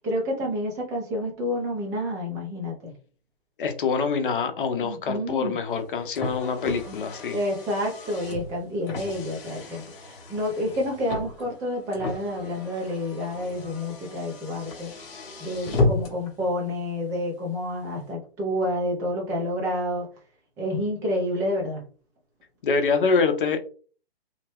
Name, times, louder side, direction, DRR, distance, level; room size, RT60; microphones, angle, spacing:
voice 1, 0.0-2.9 4.8-5.5 6.9-7.0 7.3-14.9 15.4-20.1 20.6-21.8, left 1 dB, 10° right, 0 dB, 0.5 m, -29 dB
voice 2, 3.6-7.4 22.6-23.6, left 5 dB, 55° left, 7 dB, 0.7 m, -25 dB
Car, 5.7-16.3, left 2 dB, 30° left, 1.0 m, -33 dB
2.8 x 2.1 x 3.4 m, 0.39 s
hypercardioid pair, 145°, 31 cm